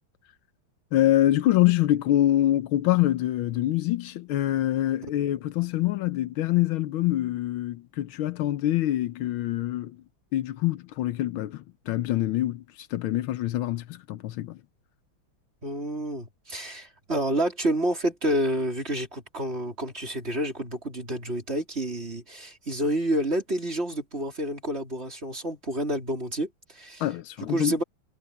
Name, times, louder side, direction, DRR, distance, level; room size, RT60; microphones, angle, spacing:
voice 1, 0.9-10.0 10.3-14.6 27.0-27.8, left 14 dB, 80° left, 1.5 m, -25 dB
voice 2, 15.6-27.0 27.5-27.8, right 1 dB, 30° right, 4.1 m, -29 dB
omnidirectional pair, 2.3 m